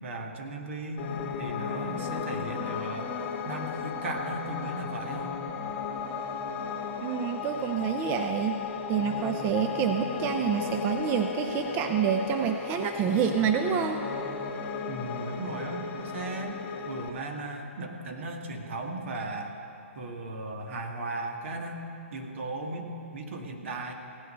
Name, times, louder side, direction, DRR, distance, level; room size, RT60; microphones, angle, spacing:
voice 1, 0.0-1.1 1.4-3.1 3.4-5.3 14.9-16.6 16.8-19.6 20.0-21.9 22.1-23.9, right 2 dB, 65° right, 3 dB, 1.8 m, -36 dB
Piano, 1.0-17.1, left 5 dB, 35° left, 2.1 m, -35 dB
voice 2, 7.0-14.0, right 8 dB, 25° right, 6 dB, 0.6 m, -28 dB
16.5 x 10.0 x 5.4 m, 2.8 s
hypercardioid pair, 140°, 7 cm